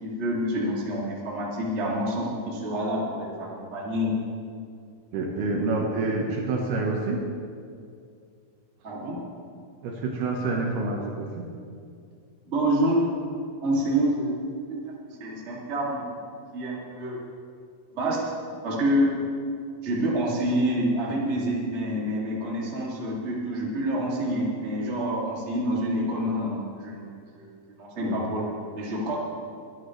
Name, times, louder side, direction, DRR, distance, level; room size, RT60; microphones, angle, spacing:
voice 1, 0.0-4.1 8.8-9.2 12.4-13.0 13.6-14.3 14.7-14.9 15.2-16.2 16.5-17.2 17.9-18.2 18.6-19.2 19.8-27.5 27.8-29.2, equal, 25° right, -5 dB, 1.6 m, -27 dB
voice 2, 5.1-7.2 9.8-11.5 28.0-28.2, right 3 dB, 70° right, 0 dB, 2.9 m, -27 dB
23.0 x 11.5 x 3.3 m, 2.4 s
omnidirectional pair, 5.3 m